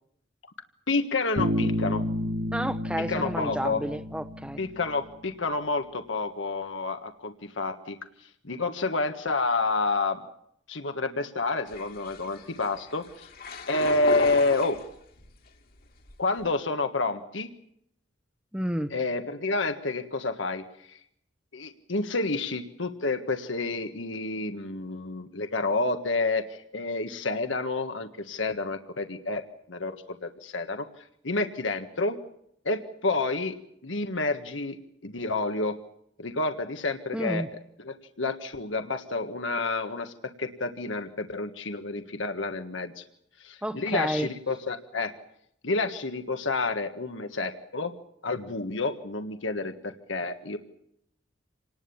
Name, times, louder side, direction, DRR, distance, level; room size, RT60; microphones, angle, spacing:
voice 1, 0.9-2.0 3.1-3.8 4.6-7.9 8.2-10.2 10.7-13.3 13.7-14.8 16.2-17.5 18.9-21.0 21.5-29.4 29.7-30.8 31.2-32.2 32.6-33.6 33.8-34.8 35.0-35.8 36.2-43.0 43.4-45.1 45.6-47.9 48.2-50.6, left 3 dB, 85° left, 7 dB, 1.6 m, -29 dB
Bass guitar, 1.4-5.1, equal, 70° right, 6.1 m, -30 dB
voice 2, 2.5-4.6 18.5-18.9 37.1-37.5 43.6-44.3, equal, 5° right, 10 dB, 0.9 m, -30 dB
sound 1, 11.7-15.3 15.8-16.4, left 3 dB, 50° left, 2.1 m, -37 dB
27.5 x 19.5 x 7.2 m, 0.73 s
head